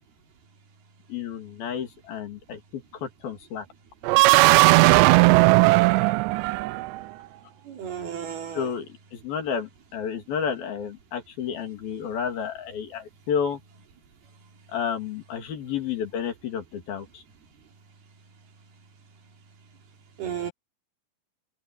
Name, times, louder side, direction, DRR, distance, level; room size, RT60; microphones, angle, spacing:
voice 1, 1.1-3.7 6.0-6.1 8.5-13.6 14.7-17.2, left 7 dB, 60° left, 4.2 m, -31 dB
sound 1, 4.0-7.0, right 22 dB, 85° right, 2.8 m, -17 dB
voice 2, 7.7-8.7 20.2-20.5, right 9 dB, 65° right, 4.8 m, -33 dB
omnidirectional pair, 4.9 m